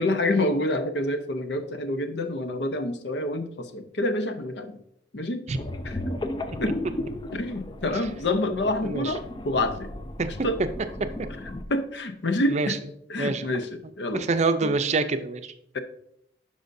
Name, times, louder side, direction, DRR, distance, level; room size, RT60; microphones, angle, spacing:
voice 1, 0.0-4.7 5.1-5.5 5.8-6.0 6.6-6.7 7.3-9.9 10.4-10.6 11.7-12.8 13.1-14.3 14.6-14.7 15.7-15.8, left 1 dB, 75° left, 9 dB, 0.7 m, -27 dB
sound 1, 5.5-11.6, left 1 dB, 25° left, 0.4 m, -35 dB
voice 2, 8.8-9.1 10.2-10.3 12.5-12.7 13.2-13.5 14.1-15.5, right 3 dB, 40° right, 10 dB, 0.5 m, -25 dB
11.5 x 5.0 x 2.6 m, 0.74 s
head